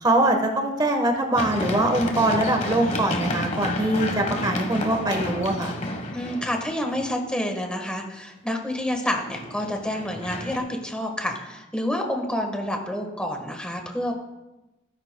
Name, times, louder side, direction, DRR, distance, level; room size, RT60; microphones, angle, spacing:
voice 1, 0.0-5.7, right 1 dB, 20° right, 4 dB, 1.2 m, -23 dB
Run, 1.4-7.2 9.1-10.6, left 1 dB, 35° left, 1.2 m, -31 dB
voice 2, 6.1-14.1, left 1 dB, 5° left, 3 dB, 1.4 m, -28 dB
16.0 x 9.9 x 2.2 m, 1.0 s
head